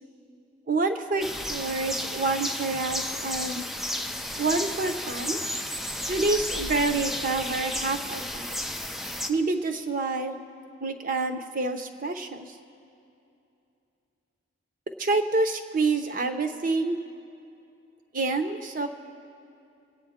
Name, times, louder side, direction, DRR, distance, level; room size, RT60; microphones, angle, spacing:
voice 1, 0.7-3.6 4.4-5.4 6.1-8.5 9.3-10.4 10.8-12.5 15.0-17.0 18.1-18.9, right 3 dB, 40° right, 7 dB, 0.8 m, -27 dB
sound 1, 1.2-9.3, left 1 dB, ahead, 0.4 m, -33 dB
24.5 x 8.9 x 3.6 m, 2.7 s
head